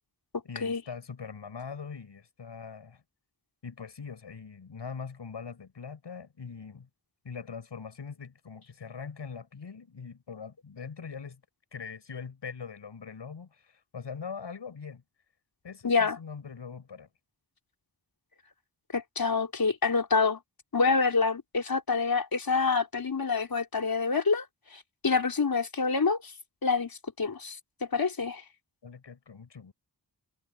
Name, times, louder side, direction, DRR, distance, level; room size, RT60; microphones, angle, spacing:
voice 1, 0.4-3.0 3.6-6.9 7.2-11.4 11.7-15.0 15.6-17.1 28.8-29.7, left 6 dB, 85° left, 7.7 m, -42 dB
voice 2, 15.8-16.2 18.9-20.4 20.7-24.5 24.7-26.3 26.6-28.4, left 4 dB, 55° left, 4.7 m, -27 dB
wide cardioid pair, 80°, 42 cm